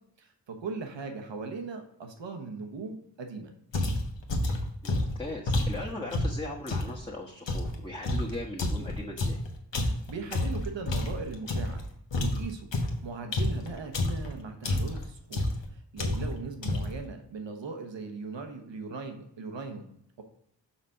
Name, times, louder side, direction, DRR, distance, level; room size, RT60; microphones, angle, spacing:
voice 1, 0.2-3.5 8.0-8.3 9.8-11.8 12.2-20.2, right 4 dB, 80° right, 5 dB, 1.1 m, -39 dB
sound 1, 3.7-7.0 7.5-11.8 12.1-14.3 14.6-15.1 15.3-15.7 16.0-16.4 16.6-17.0, left 2 dB, 80° left, 1.2 m, -29 dB
voice 2, 4.8-9.4, left 1 dB, 10° left, -4 dB, 1.2 m, -39 dB
5.8 x 4.1 x 5.7 m, 0.73 s
cardioid pair, 55°, 43 cm